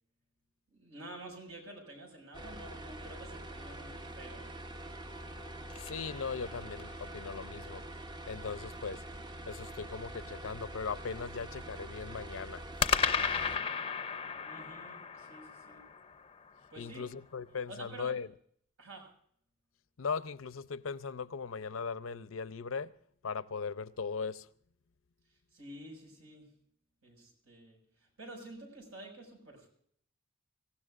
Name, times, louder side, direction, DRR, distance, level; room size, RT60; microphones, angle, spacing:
voice 1, 0.7-4.5 14.4-15.8 16.7-17.2 17.7-18.1 18.8-19.1 25.5-26.5 27.0-29.7, right 1 dB, 80° right, 5.9 m, -49 dB
sound 1, 2.3-13.6, right 1 dB, 20° right, 0.7 m, -45 dB
sound 2, 5.1-7.0 12.8-17.1, left 6 dB, 25° left, 0.6 m, -35 dB
voice 2, 5.8-7.8 8.3-9.0 9.5-12.6 16.8-18.3 20.0-22.9 23.2-24.5, left 5 dB, 75° left, 0.6 m, -38 dB
25.0 x 16.0 x 2.5 m
head